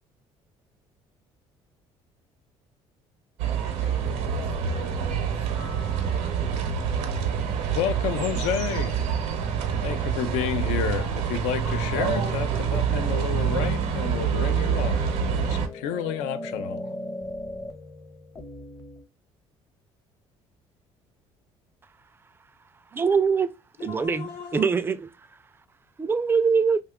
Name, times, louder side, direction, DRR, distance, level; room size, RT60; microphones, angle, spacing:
sound 1, 3.4-15.7, right 7 dB, 85° right, 0.7 m, -26 dB
voice 1, 3.6-5.5 23.8-24.7, left 6 dB, 60° left, 0.9 m, -43 dB
sound 2, 5.6-6.6 8.4-8.9 10.2-11.4 11.6-19.0, left 2 dB, 25° left, 0.6 m, -39 dB
voice 2, 7.7-9.0 9.8-15.0 15.3-16.9, left 9 dB, 90° left, 0.4 m, -30 dB
voice 3, 22.9-23.5 23.8-25.0 26.0-26.8, right 5 dB, 20° right, 0.3 m, -23 dB
2.8 x 2.3 x 3.5 m
cardioid pair, 95°, 12 cm